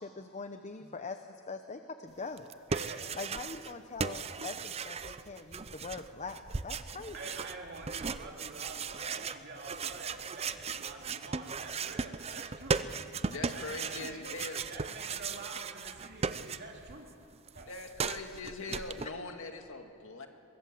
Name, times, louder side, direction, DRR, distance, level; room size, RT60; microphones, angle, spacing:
voice 1, 0.0-2.5 3.2-7.2, left 4 dB, 30° left, 7 dB, 0.9 m, -42 dB
sound 1, 2.4-3.7 4.0-17.0 17.2-19.1, right 5 dB, 30° right, 0.5 m, -37 dB
voice 2, 2.7-3.1 7.1-12.8 13.3-14.2 14.7-17.1 17.5-17.7, right 3 dB, 50° right, 0 dB, 2.7 m, -47 dB
voice 3, 13.2-14.7 17.6-20.3, left 3 dB, 60° left, 4 dB, 2.2 m, -42 dB
23.0 x 22.5 x 7.7 m, 2.6 s
head